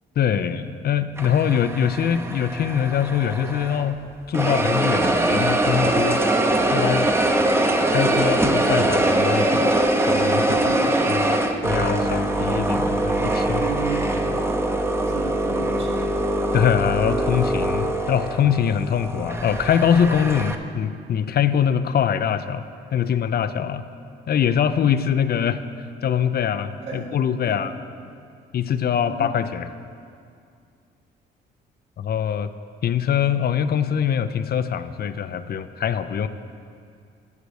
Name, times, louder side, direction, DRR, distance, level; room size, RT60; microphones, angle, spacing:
voice 1, 0.2-4.0 4.3-6.2 6.7-7.1 7.9-10.7 11.1-11.4 11.6-13.7 16.5-22.7 22.9-23.8 24.3-25.6 26.0-27.7 28.5-29.7 32.0-32.5 32.8-36.3, left 8 dB, 50° left, 11 dB, 0.5 m, -23 dB
sound 1, 1.2-3.9 4.3-20.6, right 1 dB, 10° right, 0.7 m, -22 dB
voice 2, 10.5-10.9 13.6-14.1 15.0-16.1 26.8-27.1 27.4-27.8 29.1-29.2, right 4 dB, 70° right, -2 dB, 2.1 m, -32 dB
11.0 x 6.7 x 6.4 m, 2.3 s
cardioid pair, 90°, 20 cm